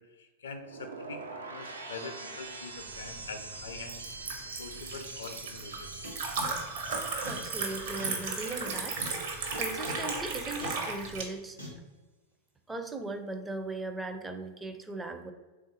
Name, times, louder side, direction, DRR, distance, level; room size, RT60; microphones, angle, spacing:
voice 1, 0.0-4.0 4.6-5.9, left 4 dB, 65° left, 7 dB, 0.5 m, -44 dB
sound 1, 0.5-10.6 10.9-11.3, right 3 dB, 70° right, 0.4 m, -45 dB
Liquid, 2.9-11.2, right 4 dB, 55° right, 0.8 m, -36 dB
sound 2, 6.0-6.1 6.4-6.5 6.9-7.0 7.2-7.3 8.0-8.1 8.6-8.7 9.0-9.1 9.5-9.6 9.8-9.9 10.6-10.7 11.6-11.7, equal, 90° right, 1.0 m, -41 dB
voice 2, 7.3-11.6 12.7-15.3, right 2 dB, 10° right, 6 dB, 0.4 m, -38 dB
3.6 x 2.5 x 4.0 m, 1.2 s
figure-of-eight pair, 90°, 0 cm